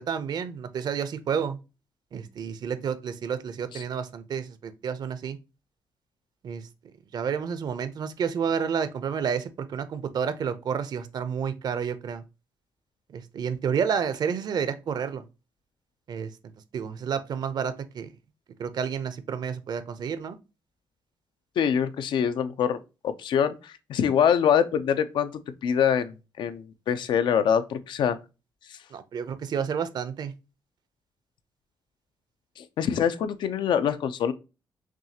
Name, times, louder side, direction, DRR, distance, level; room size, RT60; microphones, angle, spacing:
voice 1, 0.0-1.6 2.1-5.4 6.4-6.6 7.1-12.2 13.1-15.2 16.1-16.3 16.7-18.1 18.6-20.4 28.9-30.3, right 7 dB, 55° right, 0.6 m, -30 dB
voice 2, 21.6-22.8 23.0-28.2 28.7-28.8 32.6-34.3, left 8 dB, 75° left, 0.5 m, -25 dB
6.0 x 2.4 x 2.8 m
cardioid pair, 120°, 8 cm